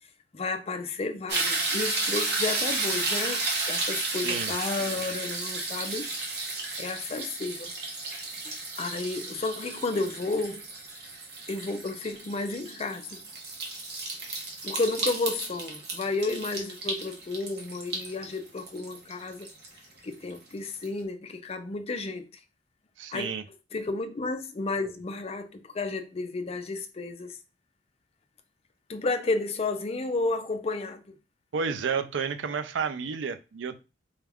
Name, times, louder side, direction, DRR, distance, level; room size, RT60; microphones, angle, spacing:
voice 1, 0.3-6.1 6.8-7.7 8.4-10.7 11.5-13.2 14.6-19.5 20.0-22.3 23.1-23.3 23.7-27.4 28.9-31.1, left 3 dB, 35° left, 0.4 m, -32 dB
sound 1, 1.3-20.4 20.8-20.9, right 3 dB, 60° right, 1.0 m, -33 dB
voice 2, 4.1-4.5 23.0-23.4 31.5-33.8, right 6 dB, 75° right, 0.4 m, -31 dB
4.2 x 2.3 x 3.4 m
head